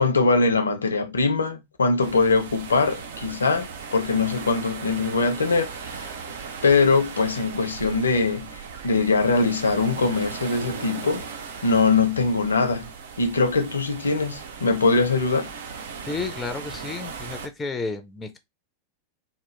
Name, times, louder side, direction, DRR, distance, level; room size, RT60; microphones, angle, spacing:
voice 1, 0.0-6.1 6.6-11.2 11.6-12.9 13.2-15.5, left 4 dB, 75° left, 0.6 m, -22 dB
sound 1, 2.0-17.5, right 6 dB, 60° right, 0.6 m, -38 dB
voice 2, 16.1-18.4, left 3 dB, 15° left, 0.5 m, -32 dB
2.9 x 2.2 x 3.2 m
figure-of-eight pair, 90°, 0 cm